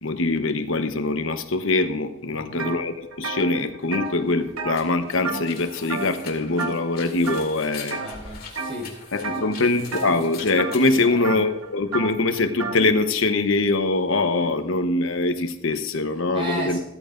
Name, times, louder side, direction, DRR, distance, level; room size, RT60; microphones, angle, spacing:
voice 1, 0.0-8.0 9.1-16.8, left 3 dB, 65° left, 8 dB, 1.0 m, -23 dB
voice 2, 2.3-2.7 8.0-8.9 9.2-9.6 11.0-11.2 16.3-16.8, equal, 25° right, -2 dB, 4.9 m, -34 dB
sound 1, 2.6-2.8 3.1-5.6 5.9-6.3 6.6-6.9 7.3-8.1 8.6-8.9 9.2-12.8, right 4 dB, 80° right, 1.2 m, -31 dB
sound 2, 4.0-11.8, left 5 dB, 45° left, 2.3 m, -43 dB
15.5 x 14.0 x 2.6 m, 0.88 s
head